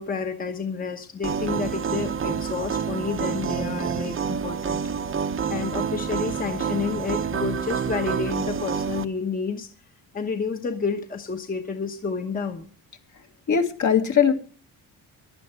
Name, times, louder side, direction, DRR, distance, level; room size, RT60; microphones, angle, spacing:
voice 1, 0.0-4.8 5.5-9.7 10.1-12.7, left 5 dB, 20° left, 5 dB, 1.1 m, -30 dB
sound 1, 1.2-9.1, right 7 dB, 35° right, 0.9 m, -28 dB
voice 2, 13.5-14.3, left 7 dB, 50° left, 5 dB, 2.0 m, -20 dB
15.5 x 11.5 x 4.6 m, 0.40 s
cardioid pair, 145°, 38 cm